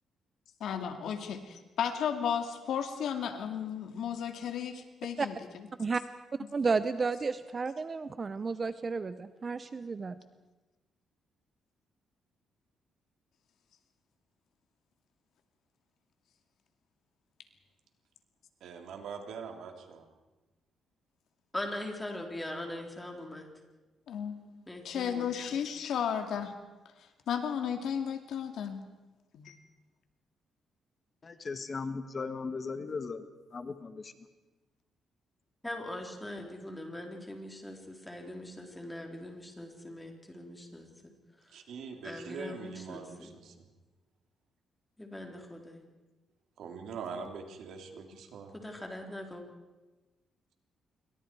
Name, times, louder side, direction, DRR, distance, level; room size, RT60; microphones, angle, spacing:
voice 1, 0.6-5.7 24.1-26.5 27.3-28.8 29.3-29.6, left 8 dB, 75° left, 6 dB, 2.5 m, -34 dB
voice 2, 6.5-10.1, right 4 dB, 30° right, 12 dB, 0.7 m, -32 dB
voice 3, 18.6-20.1 41.5-43.5 46.6-48.6, right 5 dB, 80° right, 3 dB, 3.4 m, -43 dB
voice 4, 21.5-23.5 24.7-25.3 35.6-40.9 42.0-43.3 45.0-45.8 48.5-49.4, left 1 dB, 10° left, 2 dB, 4.1 m, -41 dB
voice 5, 31.2-33.2 33.5-34.1, left 4 dB, 35° left, 9 dB, 1.5 m, -37 dB
28.0 x 24.0 x 4.8 m, 1.1 s
cardioid pair, 125°, 0 cm